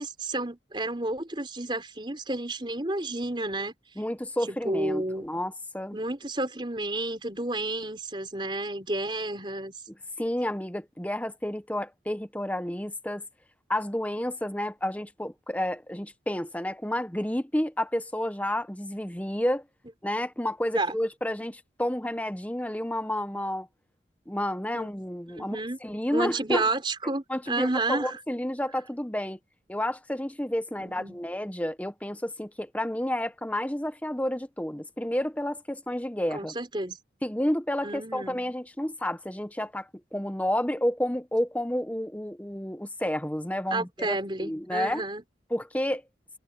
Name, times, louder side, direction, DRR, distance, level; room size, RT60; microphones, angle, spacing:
voice 1, 0.0-3.7 4.5-5.3 5.9-9.7 20.7-21.0 24.7-24.9 25.3-25.8 26.1-28.2 30.8-31.2 36.3-37.0 37.8-38.4 43.7-45.2, right 2 dB, 25° right, 4.5 m, -31 dB
voice 2, 4.0-6.0 10.2-13.2 13.7-19.6 20.0-23.7 24.3-25.6 25.8-26.6 27.3-29.4 29.7-36.5 37.2-45.0 45.5-46.0, left 1 dB, 10° left, 1.0 m, -30 dB
head